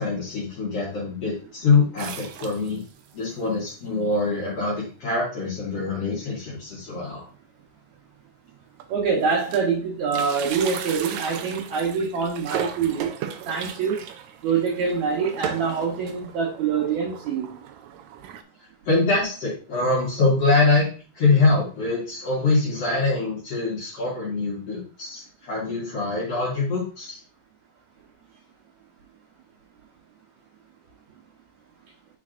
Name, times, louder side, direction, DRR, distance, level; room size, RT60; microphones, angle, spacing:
voice 1, 0.0-2.8 3.1-7.3 18.9-20.9 21.1-27.2, left 3 dB, 55° left, -6 dB, 2.3 m, -24 dB
sound 1, 2.0-3.1 3.7-3.8 4.0-4.1 4.9-5.1 5.4-5.6 6.0-6.1 7.3-7.4 8.1-8.2 8.5-9.8 10.0-18.4, right 9 dB, 90° right, 1.6 m, -36 dB
voice 2, 8.9-13.1 13.5-14.0 14.4-17.6, right 5 dB, 65° right, -4 dB, 2.2 m, -25 dB
8.5 x 4.7 x 2.5 m, 0.37 s
omnidirectional pair, 3.9 m